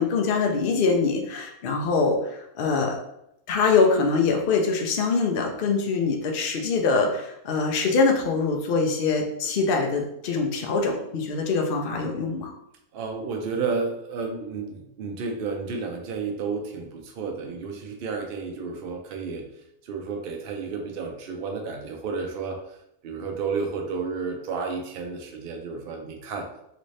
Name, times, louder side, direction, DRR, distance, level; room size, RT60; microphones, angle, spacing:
voice 1, 0.0-3.0 3.5-12.5, left 4 dB, 85° left, 1 dB, 0.4 m, -24 dB
voice 2, 12.9-19.5 19.8-22.8 23.0-26.5, right 4 dB, 85° right, 2 dB, 0.5 m, -31 dB
3.2 x 2.6 x 3.1 m, 0.79 s
omnidirectional pair, 1.7 m